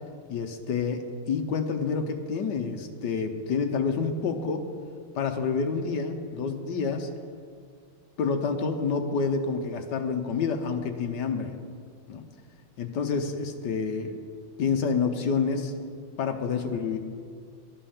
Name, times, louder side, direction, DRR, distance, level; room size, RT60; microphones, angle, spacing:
voice 1, 0.3-1.0 1.3-4.6 5.1-7.1 8.2-11.5 12.1-12.3 12.8-14.2 14.6-15.7 16.2-17.0, left 5 dB, 60° left, 5 dB, 1.4 m, -28 dB
12.0 x 8.9 x 7.2 m, 2.2 s
omnidirectional pair, 2.3 m